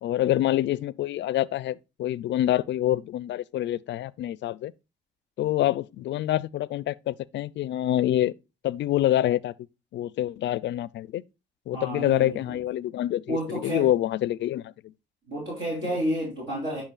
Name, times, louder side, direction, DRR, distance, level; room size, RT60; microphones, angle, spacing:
voice 1, 0.0-4.7 5.4-8.3 8.6-9.5 9.9-11.2 11.7-14.9 15.9-16.0, left 13 dB, 65° left, 0.4 m, -26 dB
voice 2, 11.7-12.6 13.3-13.9 15.3-16.8, right 1 dB, 70° right, 3.5 m, -30 dB
8.9 x 5.6 x 2.3 m
cardioid pair, 90°, 20 cm